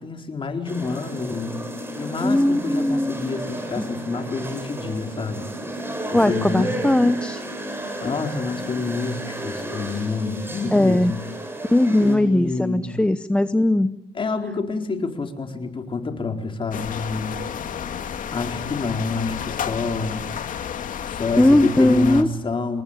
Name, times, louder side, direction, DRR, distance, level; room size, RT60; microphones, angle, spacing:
voice 1, 0.0-1.6 2.0-5.5 6.1-7.0 8.0-11.2 12.0-12.9 14.1-17.4 18.3-20.3 21.1-22.8, left 4 dB, 30° left, 5 dB, 4.3 m, -28 dB
sound 1, 0.6-12.2, right 1 dB, 15° right, 7.4 m, -33 dB
voice 2, 2.2-3.2 3.8-3.9 6.1-7.4 10.7-11.1 11.7-13.9 21.4-22.3, left 1 dB, 5° left, 11 dB, 0.9 m, -19 dB
sound 2, 16.7-22.2, left 8 dB, 50° left, 2.6 m, -31 dB
28.0 x 22.0 x 9.0 m, 0.93 s
cardioid pair, 110°, 17 cm